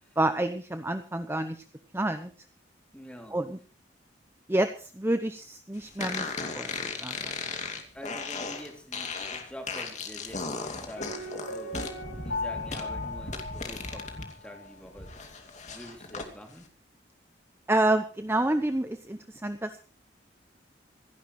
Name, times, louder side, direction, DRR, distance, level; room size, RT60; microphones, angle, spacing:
voice 1, 0.2-1.6 1.9-2.3 3.3-3.6 4.5-7.3 17.7-19.8, right 1 dB, 15° right, 9 dB, 0.8 m, -28 dB
voice 2, 2.9-3.4 7.9-11.9 12.1-15.1 15.6-16.7, equal, 5° left, 3 dB, 3.0 m, -46 dB
sound 1, 6.0-14.3 14.7-16.3, left 4 dB, 40° left, 2.6 m, -36 dB
Piano, 11.0-14.7 15.0-15.1, left 2 dB, 80° left, 5.9 m, -37 dB
27.0 x 11.0 x 3.2 m, 0.38 s
head